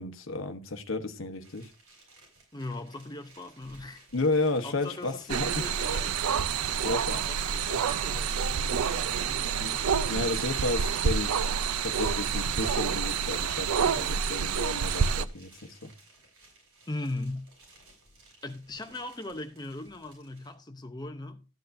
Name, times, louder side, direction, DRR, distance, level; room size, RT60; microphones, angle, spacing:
voice 1, 0.0-1.7 4.1-5.5 6.8-7.2 9.6-11.4 11.8-15.9, left 2 dB, 65° left, 1.0 m, -32 dB
sound 1, 1.4-20.5, right 2 dB, 70° right, 6.6 m, -58 dB
voice 2, 2.5-4.1 4.6-6.3 6.7-9.7 16.9-17.5 18.4-21.4, left 2 dB, 20° left, 0.7 m, -40 dB
sound 2, 5.3-15.2, right 7 dB, 85° right, 0.5 m, -28 dB
13.0 x 9.2 x 2.6 m
head